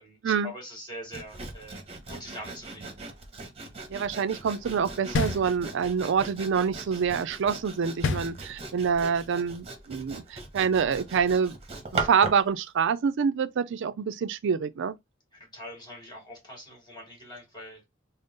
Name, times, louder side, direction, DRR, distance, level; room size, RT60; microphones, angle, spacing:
voice 1, 0.0-2.9 15.3-17.9, equal, 20° left, 2.0 m, -43 dB
Sawing, 1.1-12.5, right 3 dB, 30° right, 0.9 m, -39 dB
voice 2, 3.9-11.6 11.9-15.0, right 6 dB, 65° right, 0.4 m, -26 dB
sound 1, 5.1-6.1 8.0-8.9, left 4 dB, 60° left, 0.5 m, -30 dB
3.7 x 2.0 x 3.9 m
head